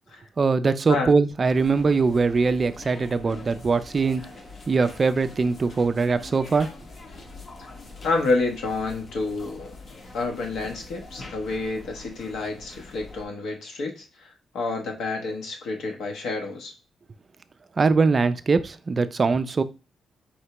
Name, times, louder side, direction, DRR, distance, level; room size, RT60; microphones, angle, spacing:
voice 1, 0.4-4.3 4.7-6.7 17.8-19.6, right 4 dB, 30° right, 0.3 m, -22 dB
sound 1, 1.4-13.2, left 3 dB, 40° left, 0.7 m, -44 dB
voice 2, 8.0-9.7 10.1-16.7, left 3 dB, 80° left, 0.9 m, -29 dB
4.3 x 3.2 x 2.9 m
cardioid pair, 135°, 0 cm